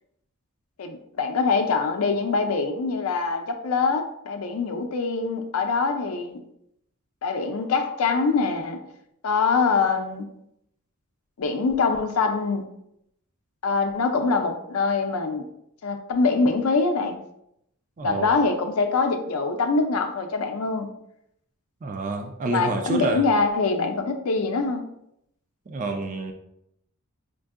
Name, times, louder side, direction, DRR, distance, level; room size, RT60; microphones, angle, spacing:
voice 1, 0.8-6.4 7.2-8.8 9.2-10.2 11.4-12.6 13.6-15.5 15.8-17.2 18.0-20.9 22.5-24.8, left 4 dB, 75° left, 5 dB, 0.5 m, -24 dB
voice 2, 18.0-18.3 21.8-23.2 25.7-26.3, right 3 dB, 35° right, 4 dB, 0.3 m, -28 dB
5.1 x 2.6 x 2.4 m, 0.77 s
head